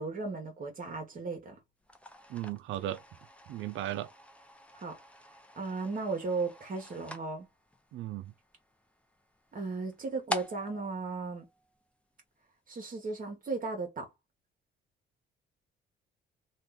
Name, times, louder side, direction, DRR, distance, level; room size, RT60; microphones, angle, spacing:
voice 1, 0.0-1.6 4.8-5.0 5.6-7.5 9.5-11.4 12.7-14.1, right 3 dB, 45° right, 1.1 m, -36 dB
sound 1, 1.8-12.2, equal, 5° left, 0.6 m, -46 dB
voice 2, 2.3-3.0 3.5-4.1 7.9-8.3, right 13 dB, 75° right, 0.5 m, -36 dB
2.6 x 2.4 x 3.5 m
cardioid pair, 90°, 20 cm